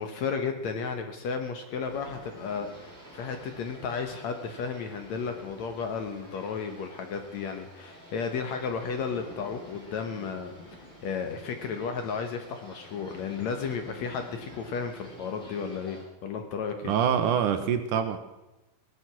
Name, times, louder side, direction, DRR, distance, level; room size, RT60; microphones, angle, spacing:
voice 1, 0.0-16.9, left 5 dB, 65° left, 6 dB, 2.1 m, -33 dB
sound 1, 1.9-16.0, equal, ahead, 6.2 m, -49 dB
voice 2, 16.8-18.2, right 8 dB, 70° right, 9 dB, 2.3 m, -25 dB
17.5 x 11.5 x 6.0 m, 0.99 s
omnidirectional pair, 4.1 m